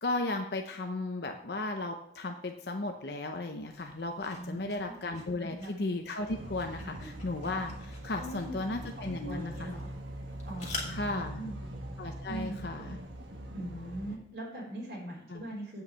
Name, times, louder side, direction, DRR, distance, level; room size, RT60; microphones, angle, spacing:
voice 1, 0.0-9.7 10.9-11.4 12.0-13.0 15.3-15.4, left 2 dB, 65° left, 4 dB, 0.8 m, -35 dB
sound 1, 3.7-11.2, left 3 dB, 40° left, 2.5 m, -47 dB
voice 2, 4.3-4.9 5.4-5.7 6.9-7.1 8.2-9.9 10.5-11.5 12.2-12.6 13.5-15.8, right 1 dB, 60° right, -4 dB, 3.8 m, -41 dB
sound 2, 6.3-14.2, right 1 dB, 85° right, 1.4 m, -42 dB
8.9 x 5.6 x 7.3 m, 0.71 s
head